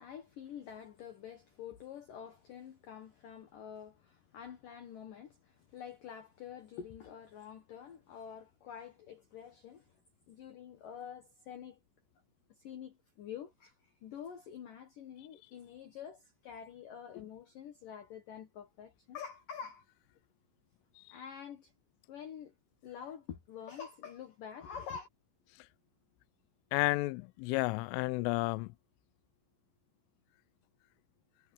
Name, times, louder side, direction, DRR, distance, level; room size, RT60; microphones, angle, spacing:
voice 1, 0.0-10.0 10.3-11.8 12.5-19.9 21.1-21.7 22.1-22.5 22.8-25.1, left 8 dB, 65° left, 2.2 m, -47 dB
voice 2, 26.7-28.7, left 23 dB, 85° left, 3.1 m, -32 dB
omnidirectional pair, 5.7 m